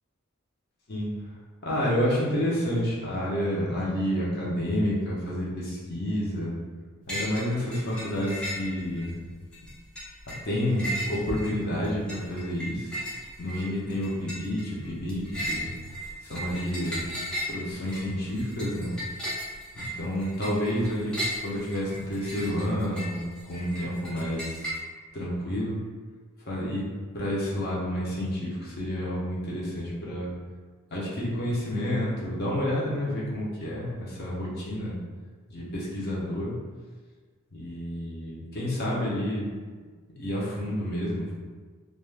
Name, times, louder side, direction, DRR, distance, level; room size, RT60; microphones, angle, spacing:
voice 1, 1.6-6.6 7.1-9.2 10.3-12.9 13.4-15.7 16.3-17.1 17.5-18.9 19.7-23.2 23.5-24.7 25.1-25.8 26.5-30.3 30.9-35.0 35.5-36.6 37.5-39.5 40.2-41.3, equal, 50° left, -5 dB, 0.6 m, -29 dB
sound 1, 7.1-7.5 7.7-9.1 9.5-24.8, equal, 5° left, 0.5 m, -36 dB
2.3 x 2.3 x 3.2 m, 1.5 s
head